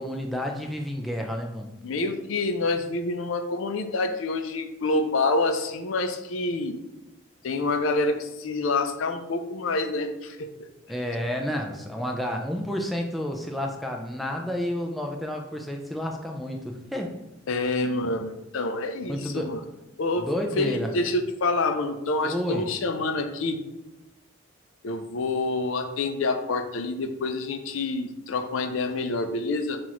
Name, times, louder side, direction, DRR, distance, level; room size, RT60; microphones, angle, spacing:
voice 1, 0.0-1.8 10.9-17.2 19.1-19.5 20.2-20.9 22.2-22.7, equal, ahead, 1 dB, 0.3 m, -30 dB
voice 2, 1.8-6.8 7.4-10.5 17.5-19.6 20.0-20.3 20.5-23.6 24.8-29.8, left 3 dB, 80° left, 8 dB, 0.5 m, -27 dB
5.7 x 2.5 x 3.0 m, 1.0 s
head